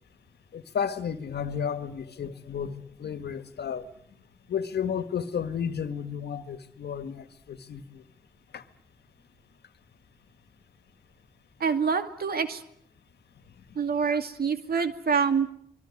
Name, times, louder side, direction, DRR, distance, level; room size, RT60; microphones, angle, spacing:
voice 1, 0.5-3.9 4.5-8.0 8.5-8.6, left 7 dB, 85° left, 1.8 m, -32 dB
voice 2, 11.6-12.6 13.8-15.5, right 6 dB, 65° right, 2.4 m, -26 dB
25.0 x 22.5 x 9.9 m
wide cardioid pair, 105°, 17 cm